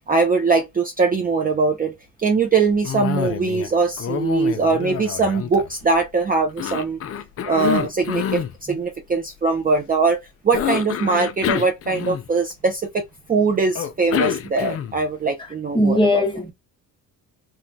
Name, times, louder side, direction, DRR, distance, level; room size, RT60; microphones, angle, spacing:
voice 1, 0.1-1.9 2.2-7.0 7.4-13.0 13.3-16.2, right 4 dB, 25° right, 0.5 m, -21 dB
Cough, 2.8-3.7 4.0-6.0 6.6-8.5 10.5-12.5 13.7-15.1, left 9 dB, 40° left, 0.5 m, -27 dB
voice 2, 15.4-16.5, left 1 dB, 15° left, 1.0 m, -20 dB
3.1 x 2.2 x 2.6 m
cardioid pair, 115°, 35 cm